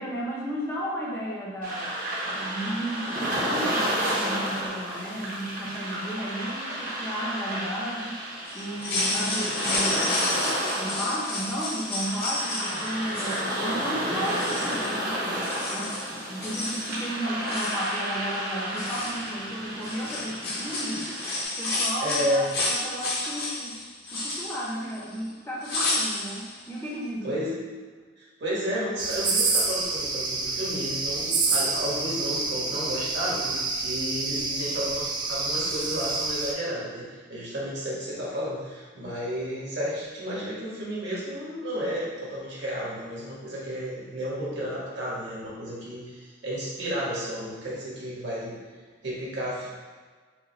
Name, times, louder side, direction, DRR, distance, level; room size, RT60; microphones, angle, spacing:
voice 1, 0.0-1.9 2.2-8.2 8.5-10.4 10.8-23.8 24.1-27.4, equal, 15° left, -6 dB, 0.6 m, -34 dB
sound 1, 1.6-21.4, right 1 dB, 45° right, 0.8 m, -31 dB
sound 2, 8.5-13.9 14.1-15.1 15.4-17.1 17.3-18.4 18.7-19.5 19.8-25.3 25.6-26.5 26.8-26.9, left 2 dB, 55° left, 0.8 m, -31 dB
voice 2, 22.0-22.5 27.2-27.5 28.2-48.6 49.0-49.7, equal, 65° right, -6 dB, 1.3 m, -32 dB
sound 3, 29.0-36.5, right 3 dB, 25° right, 0.3 m, -28 dB
4.9 x 2.1 x 3.1 m, 1.5 s
head